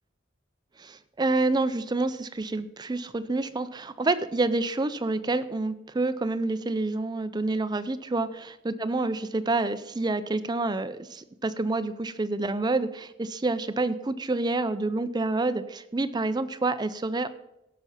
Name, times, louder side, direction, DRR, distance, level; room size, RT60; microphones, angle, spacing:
voice 1, 0.8-8.3 8.6-17.3, right 2 dB, 20° right, 12 dB, 0.5 m, -28 dB
16.0 x 6.0 x 5.7 m, 0.87 s
head